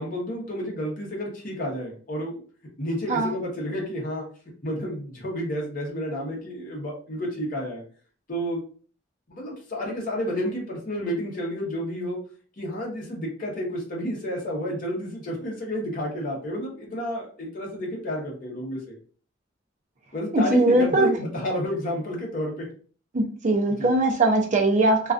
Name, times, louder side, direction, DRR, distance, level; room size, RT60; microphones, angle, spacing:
voice 1, 0.0-2.4 2.8-4.2 4.6-7.8 8.3-8.6 9.3-12.2 12.6-19.0 20.1-22.7 23.7-23.9, equal, 45° left, -2 dB, 0.8 m, -30 dB
voice 2, 20.3-21.1 23.1-25.1, right 2 dB, 40° right, 2 dB, 0.5 m, -21 dB
2.3 x 2.2 x 2.4 m, 0.42 s
head